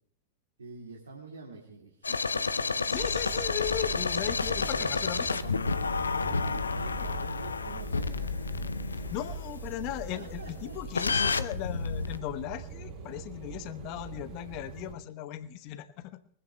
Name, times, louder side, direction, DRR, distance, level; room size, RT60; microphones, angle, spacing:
voice 1, 0.6-3.0 3.7-4.1 4.5-4.9 6.2-8.3 9.0-9.4 10.1-10.9, right 4 dB, 75° right, -1 dB, 2.3 m, -46 dB
sound 1, 2.0-9.5 10.9-12.2, left 4 dB, 75° left, 0.6 m, -30 dB
voice 2, 2.9-5.4 9.1-16.2, left 13 dB, 45° left, 13 dB, 1.0 m, -37 dB
sound 2, 2.9-14.9, right 3 dB, 40° right, 3.8 m, -41 dB
23.0 x 15.5 x 2.3 m, 0.67 s
figure-of-eight pair, 90°, 0 cm